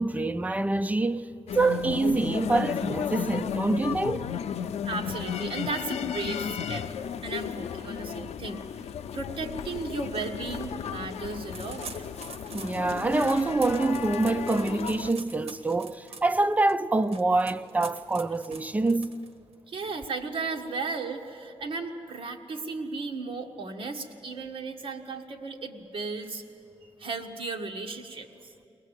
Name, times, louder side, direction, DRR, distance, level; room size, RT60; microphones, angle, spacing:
voice 1, 0.0-4.3 12.5-19.2, right 2 dB, 15° right, 0.4 m, -26 dB
sound 1, 1.5-15.1, left 8 dB, 90° left, 0.5 m, -34 dB
voice 2, 4.9-6.9 7.2-11.9 19.7-26.4 27.0-28.5, right 3 dB, 60° right, 1.5 m, -35 dB
sound 2, 11.5-19.5, right 4 dB, 75° right, 1.5 m, -45 dB
22.0 x 19.0 x 8.2 m
wide cardioid pair, 160°, 10 cm